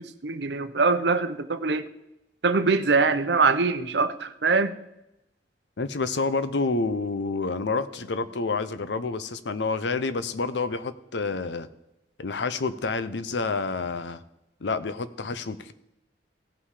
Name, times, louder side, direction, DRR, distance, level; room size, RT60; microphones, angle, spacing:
voice 1, 0.0-1.8 2.4-4.8, right 4 dB, 70° right, 0.7 m, -23 dB
voice 2, 5.8-11.7 12.2-14.2 14.6-15.7, left 3 dB, 80° left, 0.7 m, -28 dB
17.0 x 5.7 x 4.9 m
head